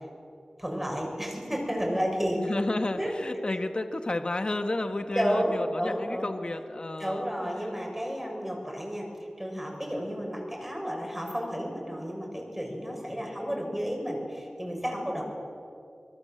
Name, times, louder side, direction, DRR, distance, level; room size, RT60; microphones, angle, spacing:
voice 1, 0.6-2.4 2.9-3.1 5.0-6.3 7.0-9.1 9.4-15.2, equal, 10° right, 0 dB, 7.1 m, -31 dB
voice 2, 2.4-7.2 7.6-7.7 13.1-13.3, left 2 dB, 45° left, 7 dB, 1.5 m, -32 dB
25.5 x 22.0 x 7.8 m, 2.4 s
wide cardioid pair, 75°, 2 cm